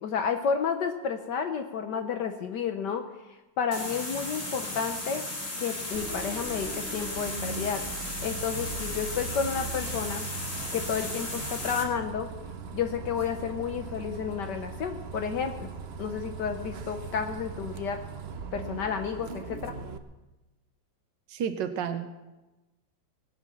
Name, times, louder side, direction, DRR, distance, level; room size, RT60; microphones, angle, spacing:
voice 1, 0.0-5.3 5.6-7.9 8.2-10.3 10.7-12.3 12.7-15.7 16.0-18.0 18.5-19.7, left 6 dB, 70° left, 6 dB, 1.5 m, -31 dB
sound 1, 3.7-11.9, left 1 dB, 45° left, 2.8 m, -35 dB
Bus, 5.9-20.0, right 5 dB, 45° right, 0.9 m, -39 dB
voice 2, 21.3-22.1, right 8 dB, 75° right, 7 dB, 1.6 m, -31 dB
20.5 x 8.8 x 7.2 m, 1.1 s
omnidirectional pair, 2.0 m